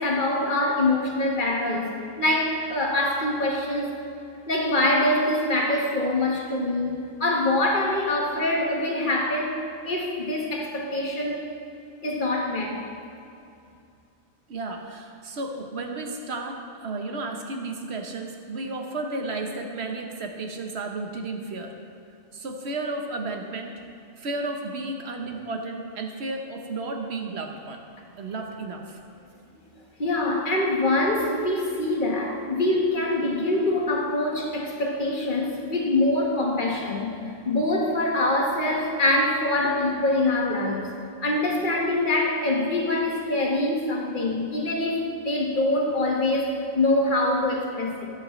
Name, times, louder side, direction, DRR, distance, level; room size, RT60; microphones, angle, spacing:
voice 1, 0.0-4.0 4.5-9.6 9.8-11.4 12.0-12.8 30.0-37.1 37.4-40.9 41.2-48.1, left 2 dB, 40° left, -1 dB, 1.5 m, -24 dB
voice 2, 14.5-21.7 22.3-23.7 24.2-27.8 28.1-29.0, right 2 dB, 55° right, 3 dB, 1.2 m, -33 dB
15.5 x 8.6 x 3.2 m, 2.6 s
omnidirectional pair, 1.3 m